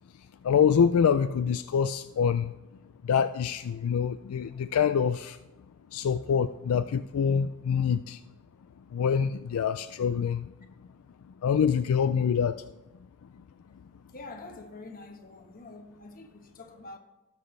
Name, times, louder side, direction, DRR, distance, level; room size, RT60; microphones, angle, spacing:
voice 1, 0.4-2.5 3.0-5.4 5.9-8.2 8.9-10.5 11.4-12.6, left 7 dB, 75° left, 0.4 m, -25 dB
voice 2, 14.1-17.0, left 2 dB, 40° left, 1.2 m, -46 dB
18.0 x 6.0 x 3.2 m
head